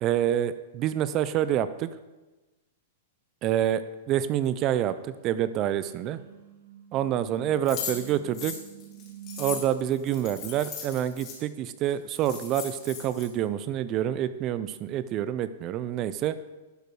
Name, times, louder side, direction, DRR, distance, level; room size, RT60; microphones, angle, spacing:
voice 1, 0.0-1.9 3.4-6.2 6.9-8.6 9.4-16.4, right 11 dB, 35° right, 13 dB, 0.5 m, -27 dB
sound 1, 5.3-9.6, right 9 dB, 85° right, 1.5 m, -48 dB
sound 2, 7.7-11.4 11.9-12.0 12.2-13.2, left 7 dB, 40° left, 2.6 m, -38 dB
11.5 x 5.0 x 4.7 m, 1.2 s
hypercardioid pair, 135°, 0 cm